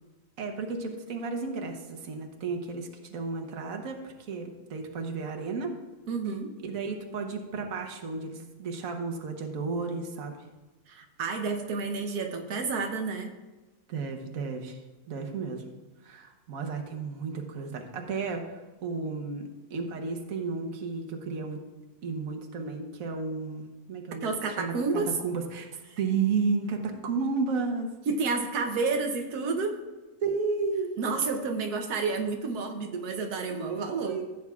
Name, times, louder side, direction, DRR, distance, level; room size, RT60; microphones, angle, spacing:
voice 1, 0.4-5.7 6.6-10.5 13.9-15.6 16.0-21.6 22.0-27.9 30.2-30.9 33.5-34.3, right 4 dB, 65° right, 3 dB, 1.4 m, -33 dB
voice 2, 6.1-6.5 10.9-13.3 24.2-25.1 28.1-29.8 31.0-34.2, right 4 dB, 90° right, 4 dB, 1.4 m, -30 dB
15.5 x 8.0 x 2.4 m, 1.2 s
omnidirectional pair, 1.6 m